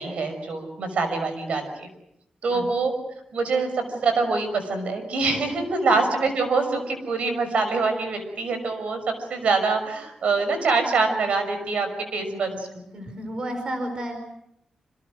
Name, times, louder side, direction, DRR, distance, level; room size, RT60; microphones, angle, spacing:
voice 1, 0.0-1.9 2.4-2.9 3.3-12.7, right 4 dB, 75° right, 8 dB, 6.0 m, -25 dB
voice 2, 12.3-12.6 12.9-14.2, equal, 40° right, 6 dB, 4.8 m, -32 dB
28.0 x 26.5 x 6.4 m, 0.80 s
wide cardioid pair, 175°, 2 cm